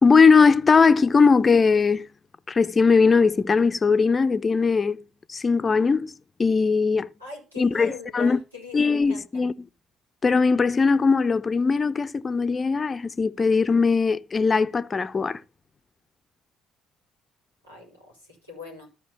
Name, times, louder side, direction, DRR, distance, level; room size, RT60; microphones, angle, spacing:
voice 1, 0.0-2.1 2.5-5.0 5.3-6.1 6.4-7.1 7.6-8.4 8.7-9.5 10.2-15.4, left 4 dB, 30° left, 0.7 m, -20 dB
voice 2, 7.2-9.5 17.6-18.9, left 3 dB, 90° right, 4.6 m, -42 dB
14.0 x 5.3 x 5.4 m
figure-of-eight pair, 50°, 0 cm